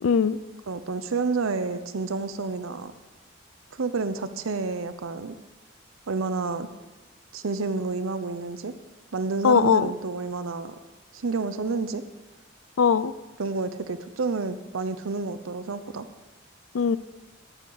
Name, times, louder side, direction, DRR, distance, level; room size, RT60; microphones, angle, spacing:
voice 1, 0.0-0.4 9.4-9.9 12.8-13.1 16.7-17.0, left 6 dB, 90° left, 17 dB, 0.4 m, -20 dB
voice 2, 0.7-2.9 3.8-5.4 6.1-6.7 7.3-8.7 9.1-10.8 11.1-12.0 13.4-16.1, right 4 dB, 80° right, 11 dB, 0.7 m, -29 dB
13.0 x 12.0 x 4.0 m, 1.2 s
head